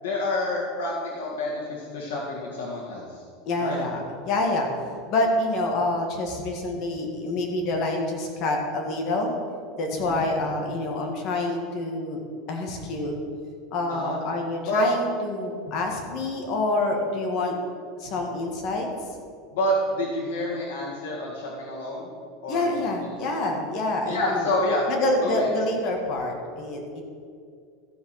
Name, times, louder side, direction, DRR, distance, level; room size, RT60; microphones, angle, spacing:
voice 1, 0.0-3.2 3.6-3.8 10.0-10.3 13.9-14.1 14.6-14.9 19.5-22.1 22.4-23.1 24.1-24.9 25.2-25.5, left 1 dB, 85° left, -4 dB, 1.9 m, -28 dB
voice 2, 3.5-4.7 5.1-9.3 9.8-12.2 12.5-13.1 13.7-17.6 18.0-18.9 22.5-24.6 24.9-27.0, left 2 dB, 45° left, 1 dB, 1.9 m, -27 dB
14.0 x 5.0 x 5.9 m, 2.3 s
supercardioid pair, 145°, 0 cm